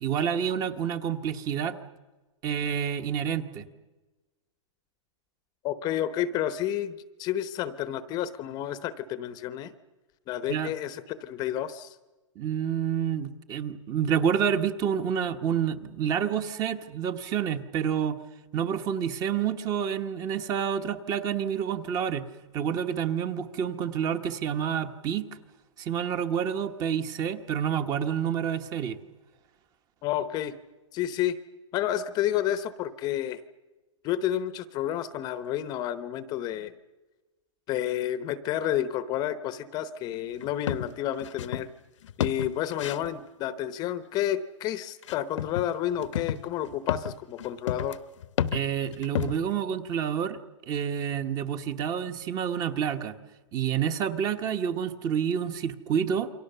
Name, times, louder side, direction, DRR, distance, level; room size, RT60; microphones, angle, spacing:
voice 1, 0.0-1.8 2.4-3.6 10.5-10.7 12.4-18.2 18.5-22.2 22.5-25.3 25.8-29.0 48.5-50.4 50.7-53.1 53.5-56.3, right 8 dB, 20° right, 10 dB, 1.2 m, -28 dB
voice 2, 5.6-6.9 7.2-9.7 10.3-12.0 30.0-30.5 30.9-31.4 31.7-33.4 34.0-36.7 37.7-41.7 42.2-48.0, left 11 dB, 25° left, 13 dB, 0.9 m, -30 dB
sound 1, 40.4-41.7 42.0-43.1 45.0-45.7 46.0-49.6, left 10 dB, 65° left, 1.0 m, -31 dB
28.5 x 24.0 x 6.8 m, 1.2 s
hypercardioid pair, 155°, 17 cm